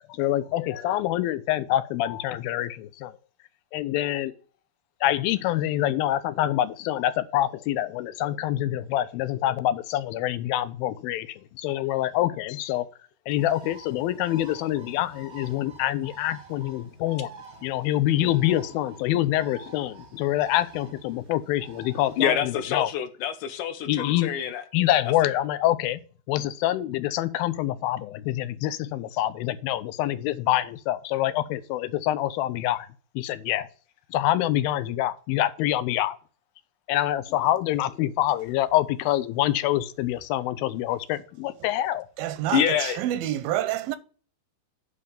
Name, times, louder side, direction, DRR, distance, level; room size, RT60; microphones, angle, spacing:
voice 1, 0.2-3.1 3.7-4.3 5.0-11.3 11.6-12.9 13.3-17.3 17.6-22.9 23.9-24.3 24.7-26.0 26.3-32.9 33.2-33.7 34.1-36.2 36.9-42.1, left 13 dB, 90° left, 2.4 m, -26 dB
Bird, 13.3-22.6, right 3 dB, 55° right, 0.7 m, -48 dB
voice 2, 22.2-24.6 42.5-43.0, left 8 dB, 75° left, 2.1 m, -26 dB
voice 3, 42.2-44.0, right 13 dB, 85° right, 2.4 m, -28 dB
9.7 x 3.3 x 6.9 m
omnidirectional pair, 4.2 m